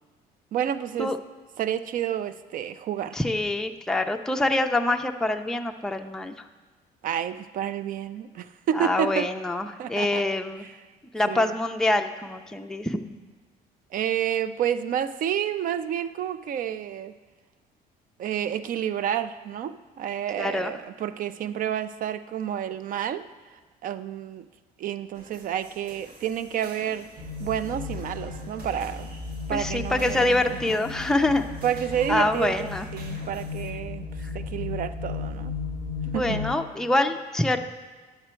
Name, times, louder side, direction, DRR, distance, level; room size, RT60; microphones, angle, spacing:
voice 1, 0.5-1.2 1.6-3.2 7.0-9.3 9.8-10.2 10.6-10.7 11.3-11.6 13.9-17.2 18.2-23.3 23.8-24.5 24.8-29.1 29.5-30.8 31.6-34.1 34.3-35.6 36.1-36.4, right 10 dB, 55° right, 13 dB, 0.4 m, -30 dB
voice 2, 3.1-6.3 8.8-10.6 11.1-13.0 20.4-20.7 29.5-31.4 32.1-32.9 36.1-37.6, left 2 dB, 5° left, 5 dB, 0.4 m, -25 dB
sound 1, 25.1-33.7, right 2 dB, 70° right, 1.6 m, -48 dB
sound 2, 27.2-36.5, left 4 dB, 30° right, 1.0 m, -35 dB
10.0 x 6.8 x 4.4 m, 1.3 s
cardioid pair, 110°, 17 cm